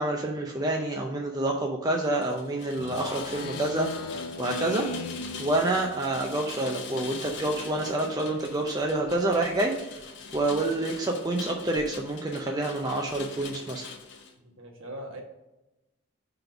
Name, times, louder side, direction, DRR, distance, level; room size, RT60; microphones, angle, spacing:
voice 1, 0.0-3.9 4.4-4.9 5.4-13.9, right 2 dB, 20° right, 0 dB, 0.5 m, -28 dB
Rain, 2.0-14.3, left 5 dB, 55° left, 0.7 m, -42 dB
Speech synthesizer, 2.8-6.3, left 3 dB, 80° left, 0.4 m, -37 dB
voice 2, 14.4-15.2, right 1 dB, 65° right, 1 dB, 1.3 m, -41 dB
5.3 x 3.8 x 5.7 m, 0.99 s
head